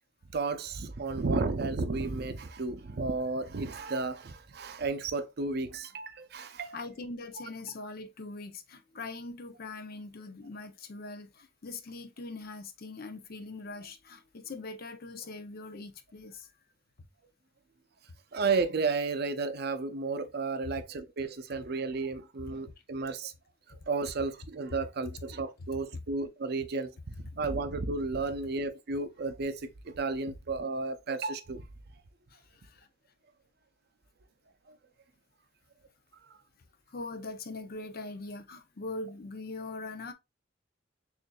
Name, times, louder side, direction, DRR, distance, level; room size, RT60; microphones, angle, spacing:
voice 1, 0.3-6.8 18.3-23.3 23.7-31.7 34.7-34.8, right 3 dB, 60° right, 0.5 m, -33 dB
voice 2, 6.7-16.5 25.9-26.0 32.3-32.9 36.9-40.1, left 3 dB, 55° left, 0.6 m, -42 dB
6.4 x 2.6 x 2.2 m
head